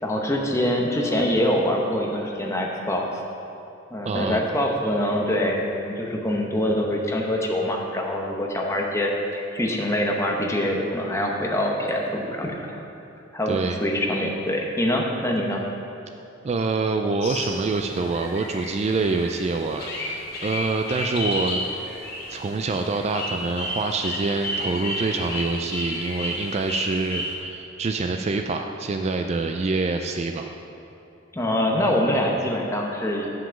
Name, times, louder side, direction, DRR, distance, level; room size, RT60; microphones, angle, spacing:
voice 1, 0.0-3.2 3.9-12.8 13.3-15.6 31.3-33.3, left 1 dB, 15° left, 0 dB, 0.9 m, -24 dB
voice 2, 4.0-4.4 13.5-13.8 16.4-21.7 22.3-30.5, right 3 dB, 30° right, 5 dB, 0.3 m, -26 dB
sound 1, 17.2-27.3, left 1 dB, 50° left, 2.2 m, -32 dB
7.5 x 6.0 x 7.0 m, 2.8 s
head